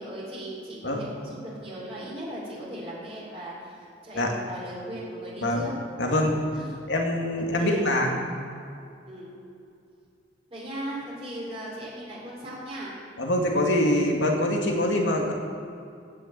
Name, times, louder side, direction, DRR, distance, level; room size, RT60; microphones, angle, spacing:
voice 1, 0.0-5.7 6.3-6.8 7.4-7.9 9.1-9.3 10.5-13.0, right 1 dB, 35° right, -5 dB, 4.2 m, -38 dB
voice 2, 6.0-6.4 6.9-8.2 13.2-15.3, left 1 dB, 90° left, 1 dB, 2.1 m, -24 dB
15.5 x 6.7 x 8.2 m, 2.5 s
head